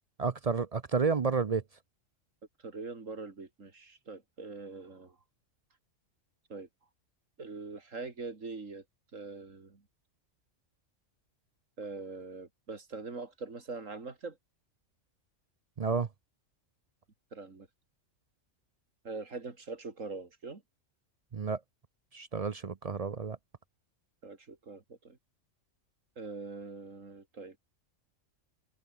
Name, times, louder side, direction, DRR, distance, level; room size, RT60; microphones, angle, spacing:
voice 1, 0.2-1.6 15.8-16.1 21.3-21.6 22.1-23.4, right 5 dB, 45° right, 0.5 m, -30 dB
voice 2, 2.6-5.2 6.5-6.7 7.4-8.8 9.1-9.8 11.8-14.4 17.3-17.7 19.0-20.6 24.2-25.2 26.2-27.6, right 4 dB, 75° right, 3.1 m, -43 dB
omnidirectional pair, 1.3 m